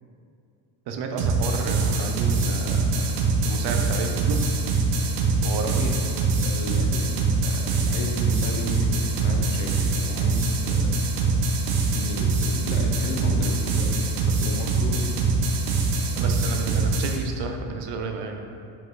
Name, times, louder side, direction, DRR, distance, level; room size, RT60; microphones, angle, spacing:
voice 1, 0.9-3.2 3.4-4.4 5.4-5.8 16.2-18.4, right 4 dB, 55° right, 4 dB, 0.7 m, -32 dB
sound 1, 1.2-17.2, right 3 dB, 80° right, 1.0 m, -23 dB
voice 2, 5.4-5.9 6.2-10.9 11.9-13.9 14.2-15.1, left 3 dB, 70° left, 1 dB, 1.1 m, -34 dB
5.5 x 5.1 x 3.9 m, 2.5 s
cardioid pair, 145°, 49 cm